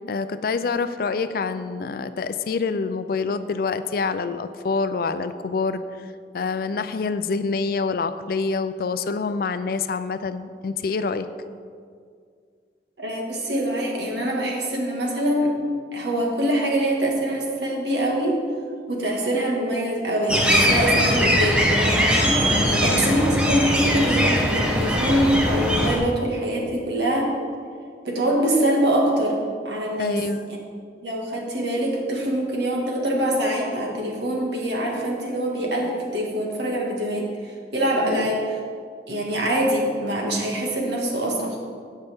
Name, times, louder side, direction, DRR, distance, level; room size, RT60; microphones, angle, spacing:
voice 1, 0.1-5.8 6.3-11.3 22.4-23.2 30.0-30.5 38.0-38.4, left 4 dB, 55° left, 11 dB, 0.4 m, -26 dB
voice 2, 13.0-15.5 15.9-18.4 18.9-27.3 28.0-29.4 29.7-30.2 31.0-37.3 37.7-38.4 39.1-41.6, right 1 dB, 70° right, -1 dB, 1.7 m, -24 dB
sound 1, 20.3-26.0, equal, 5° right, 0.8 m, -21 dB
16.0 x 5.5 x 3.5 m, 2.2 s
head